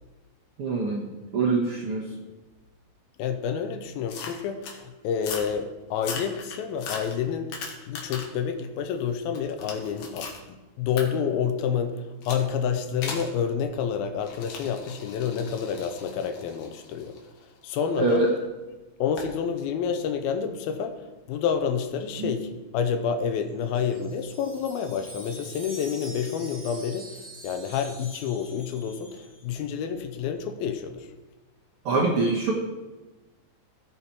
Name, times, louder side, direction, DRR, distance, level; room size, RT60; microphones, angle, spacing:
voice 1, 0.6-1.0 1.3-2.0 18.0-18.3 22.2-22.3 31.8-32.5, right 3 dB, 80° right, -2 dB, 1.2 m, -24 dB
voice 2, 3.2-7.5 7.8-10.3 10.8-17.1 17.6-18.2 19.0-21.0 21.3-27.1 27.4-31.1, left 7 dB, 85° left, 7 dB, 2.6 m, -29 dB
sound 1, 4.1-4.8 5.2-5.5 5.9-8.4 8.8-10.4 11.0-11.1 12.2-12.5 13.0-13.3 14.2-18.2 19.2-19.3, left 5 dB, 65° left, 2.8 m, -38 dB
Wind chime, 23.5-29.7, equal, 5° right, 1.6 m, -45 dB
16.0 x 5.8 x 4.5 m, 1.2 s
omnidirectional pair, 4.3 m